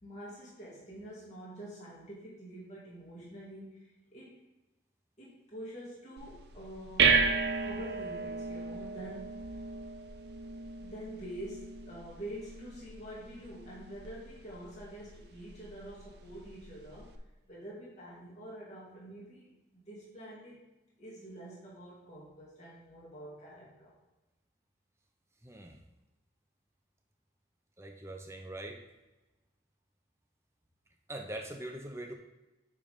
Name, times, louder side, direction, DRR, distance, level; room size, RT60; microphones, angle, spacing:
voice 1, 0.0-4.3 5.2-9.6 10.8-17.2 17.5-19.5 19.7-20.7 21.0-23.9, right 1 dB, 40° left, -7 dB, 2.3 m, -47 dB
sound 1, 6.2-17.2, right 4 dB, 60° right, 0.7 m, -34 dB
voice 2, 25.4-25.8 27.8-28.8 31.1-32.1, right 1 dB, 15° right, 3 dB, 0.7 m, -42 dB
9.0 x 3.7 x 5.1 m, 1.0 s
head